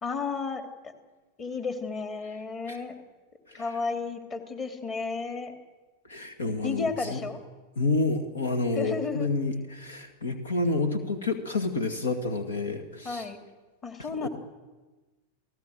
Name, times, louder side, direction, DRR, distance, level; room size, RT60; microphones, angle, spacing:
voice 1, 0.0-0.9 1.4-2.9 3.5-5.5 6.6-7.4 8.8-9.3 13.0-13.4 13.8-14.3, left 4 dB, 25° left, 7 dB, 2.9 m, -33 dB
voice 2, 6.1-7.2 7.8-13.2 14.2-14.3, left 3 dB, 70° left, 8 dB, 2.2 m, -29 dB
29.5 x 18.0 x 7.9 m, 1.2 s
figure-of-eight pair, 90°, 0 cm